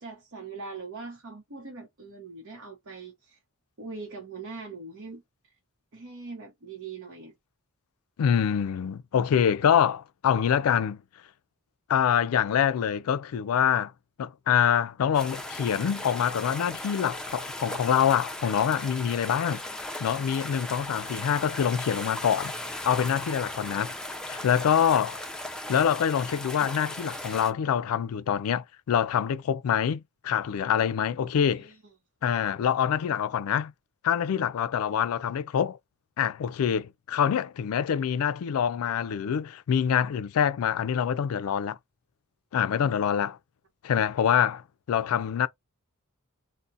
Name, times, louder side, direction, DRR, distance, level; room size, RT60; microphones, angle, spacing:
voice 1, 0.0-3.4 3.8-5.2 5.9-7.3 23.7-23.8 31.3-31.8, right 4 dB, 60° right, 0.8 m, -41 dB
voice 2, 8.2-11.0 11.9-13.9 14.2-19.6 20.0-22.5 22.8-23.9 24.3-25.2 25.7-31.7 32.2-33.7 34.0-35.8 36.2-41.8 42.5-43.4 43.8-44.6 44.9-45.5, left 8 dB, 70° left, 0.3 m, -25 dB
sound 1, 15.1-27.5, left 1 dB, 5° left, 0.5 m, -37 dB
2.5 x 2.1 x 3.9 m
head